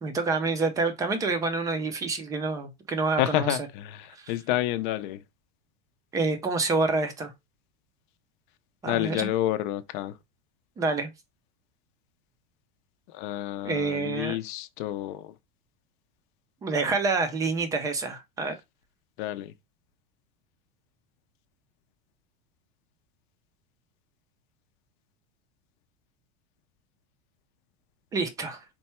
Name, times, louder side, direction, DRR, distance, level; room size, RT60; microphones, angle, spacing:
voice 1, 0.0-3.6 4.1-4.3 6.1-7.3 8.8-9.3 10.8-11.1 13.6-14.4 16.6-18.5 28.1-28.6, right 3 dB, 10° right, 0.4 m, -27 dB
voice 2, 3.2-5.2 8.8-10.1 13.1-15.3 19.2-19.5, left 13 dB, 50° left, 0.6 m, -29 dB
4.5 x 2.2 x 4.2 m
supercardioid pair, 160°, 32 cm